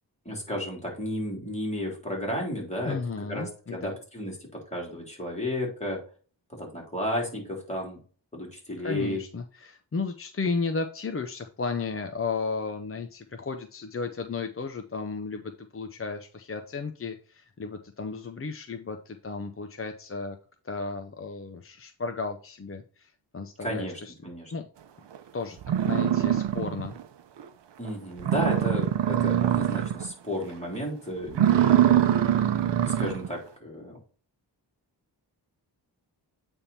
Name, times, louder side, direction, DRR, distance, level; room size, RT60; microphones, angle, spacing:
voice 1, 0.3-3.0 3.3-4.3 4.7-6.0 6.6-8.0 8.3-9.2 23.6-24.5 27.8-31.9 32.8-34.0, equal, 15° left, -2 dB, 3.6 m, -33 dB
voice 2, 2.8-4.0 8.8-20.4 20.6-24.1 24.5-24.6 25.3-27.0, left 4 dB, 30° left, 6 dB, 0.7 m, -34 dB
sound 1, 25.1-25.2 25.6-27.0 27.4-27.5 27.9-28.0 28.2-30.1 30.4-30.8 31.3-33.3, right 10 dB, 75° right, 0.7 m, -23 dB
8.7 x 3.6 x 4.2 m, 0.40 s
wide cardioid pair, 80°, 43 cm